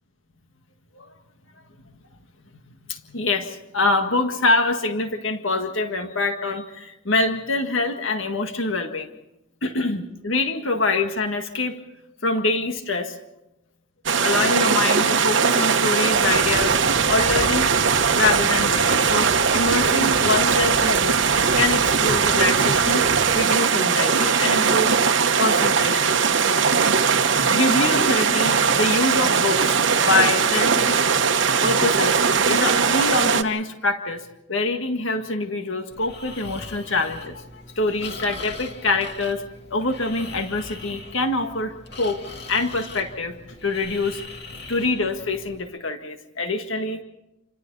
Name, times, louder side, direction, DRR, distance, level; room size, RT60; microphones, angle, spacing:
voice 1, 2.9-9.1 9.6-11.8 12.2-13.1 14.2-16.8 17.1-17.7 18.1-21.2 21.5-23.1 23.3-24.9 25.4-26.5 27.5-31.0 31.6-39.4 39.7-42.2 42.5-44.2 44.7-47.0, left 3 dB, 75° left, 6 dB, 1.8 m, -25 dB
sound 1, 14.1-33.4, right 6 dB, 65° right, 1.1 m, -20 dB
sound 2, 16.1-23.5, right 1 dB, 50° right, 1.4 m, -34 dB
Breathing, 35.9-45.6, left 3 dB, 55° left, 2.7 m, -40 dB
28.5 x 25.5 x 4.1 m, 0.88 s
head